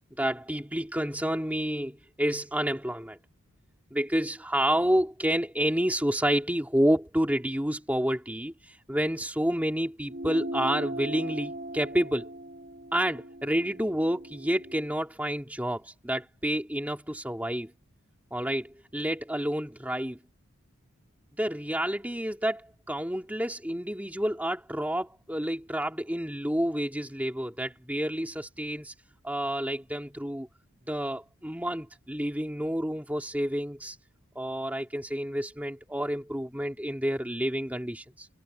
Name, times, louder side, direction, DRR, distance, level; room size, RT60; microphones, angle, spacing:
voice 1, 0.2-3.2 3.9-12.3 12.9-17.7 18.3-20.2 21.4-28.9 29.2-30.5 30.9-34.0 34.3-38.3, equal, 5° right, 2.5 m, -29 dB
sound 1, 10.1-14.9, right 1 dB, 45° right, 2.3 m, -38 dB
head